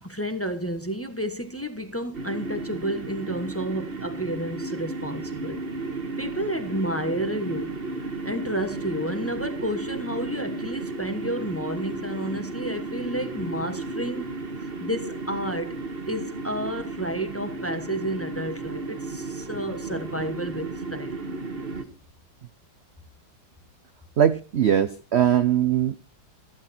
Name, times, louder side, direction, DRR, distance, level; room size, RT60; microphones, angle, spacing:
voice 1, 0.0-5.6 6.2-7.8 8.2-14.3 14.8-15.8 16.0-21.2, equal, 10° left, 1.1 m, -31 dB
sound 1, 2.1-21.8, right 3 dB, 30° right, 1.6 m, -34 dB
voice 2, 24.2-26.0, right 9 dB, 65° right, 0.6 m, -21 dB
14.5 x 12.0 x 4.3 m
omnidirectional pair, 2.1 m